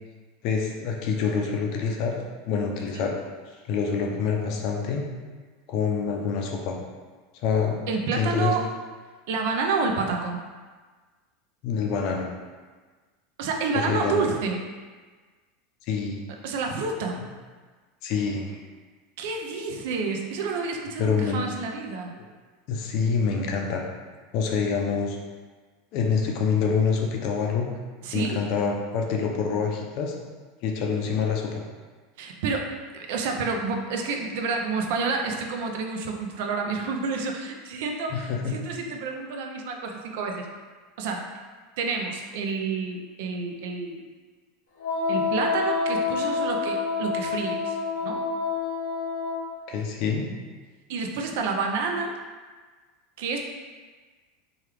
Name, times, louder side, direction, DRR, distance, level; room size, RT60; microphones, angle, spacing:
voice 1, 0.4-2.1 2.5-3.1 3.7-5.0 5.7-6.7 7.4-8.5 11.6-12.3 13.7-14.3 15.9-16.2 18.0-18.6 21.0-21.4 22.7-23.8 24.3-25.2 25.9-27.7 28.1-30.1 30.6-31.6 38.1-38.5 49.7-50.2, left 5 dB, 50° left, 1 dB, 0.5 m, -26 dB
voice 2, 7.9-8.7 9.3-10.4 13.4-14.6 16.4-17.2 19.2-22.1 28.0-28.4 32.2-40.5 41.0-41.3 41.8-44.0 45.1-48.2 50.9-52.2 53.2-53.4, right 4 dB, 70° right, 3 dB, 0.4 m, -29 dB
Wind instrument woodwind instrument, 44.8-49.5, left 4 dB, 85° left, 0.7 m, -27 dB
3.0 x 2.3 x 3.3 m, 1.4 s
supercardioid pair, 140°, 0 cm